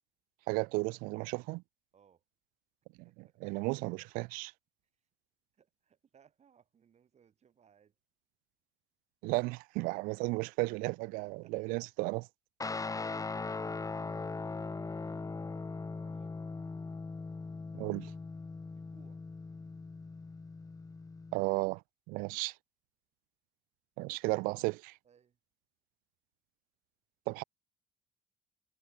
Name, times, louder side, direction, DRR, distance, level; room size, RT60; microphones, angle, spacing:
voice 1, 0.5-1.6 3.0-3.1 3.4-4.5 9.2-12.3 17.7-18.1 21.3-21.8 22.1-22.5 24.0-25.0 27.3-27.4, right 25 dB, 85° right, 0.7 m, -34 dB
voice 2, 1.9-2.2 3.0-3.6 5.5-7.9 11.2-11.6 14.5-16.4 18.7-19.2 25.0-25.4, right 7 dB, 50° right, 7.4 m, -66 dB
Guitar, 12.6-21.4, left 3 dB, 25° left, 1.5 m, -40 dB
supercardioid pair, 65°, 14 cm